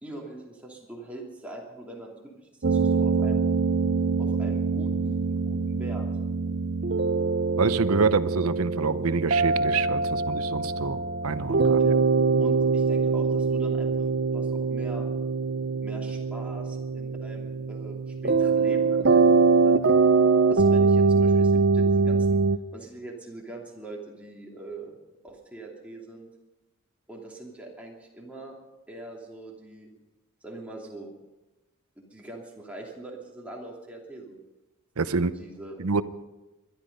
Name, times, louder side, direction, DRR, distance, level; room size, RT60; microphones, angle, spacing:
voice 1, 0.0-3.4 4.2-6.1 11.8-12.0 12.4-14.1 14.3-15.1 15.8-19.8 20.5-22.4 22.7-24.9 25.2-26.3 27.1-28.6 28.9-29.9 30.4-31.1 32.0-34.4 35.1-35.8, right 2 dB, 5° right, -2 dB, 2.8 m, -42 dB
sound 1, 2.6-22.6, right 4 dB, 50° right, 0.6 m, -23 dB
voice 2, 7.6-11.0 11.2-11.9 12.3-12.5 35.0-35.3 35.8-36.0, right 4 dB, 90° right, 14 dB, 0.8 m, -26 dB
21.5 x 12.0 x 5.4 m, 1.1 s
head